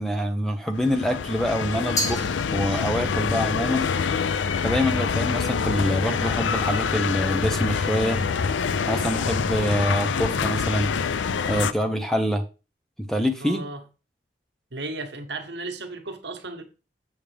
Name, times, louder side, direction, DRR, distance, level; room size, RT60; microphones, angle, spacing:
voice 1, 0.0-3.9 4.6-8.2 8.9-10.9 11.5-12.4 13.1-13.6, equal, ahead, 0.6 m, -25 dB
sound 1, 0.7-11.7, left 6 dB, 80° left, 0.4 m, -26 dB
Glass, 2.0-3.2, left 1 dB, 20° left, 1.2 m, -31 dB
voice 2, 13.4-13.8 14.7-16.6, right 2 dB, 70° right, 1.3 m, -34 dB
7.2 x 7.0 x 3.4 m
head